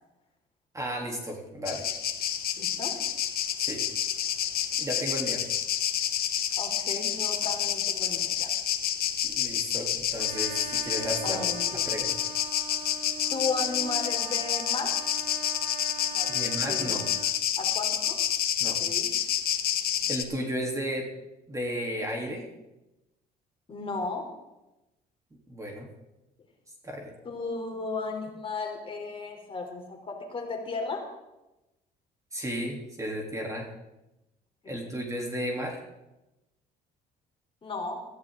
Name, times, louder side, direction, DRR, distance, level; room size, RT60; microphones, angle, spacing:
voice 1, 0.7-1.9 3.6-3.8 4.8-5.4 9.2-11.4 11.8-12.2 16.3-17.1 18.6-18.8 20.1-21.1 21.5-22.5 25.5-25.9 26.8-27.1 32.3-33.7 34.6-35.8, equal, 20° right, 0 dB, 3.2 m, -34 dB
sound 1, 1.7-20.2, left 10 dB, 65° left, 1.4 m, -29 dB
voice 2, 2.6-2.9 6.6-8.5 11.2-11.8 13.3-15.0 16.1-17.0 17.6-18.2 18.8-19.1 23.7-24.3 27.2-31.0 34.6-34.7 37.6-38.1, left 3 dB, 30° left, 2 dB, 3.4 m, -35 dB
Trumpet, 10.2-17.3, right 6 dB, 90° right, 2.3 m, -42 dB
17.0 x 14.5 x 3.8 m, 0.96 s
cardioid pair, 110°, 17 cm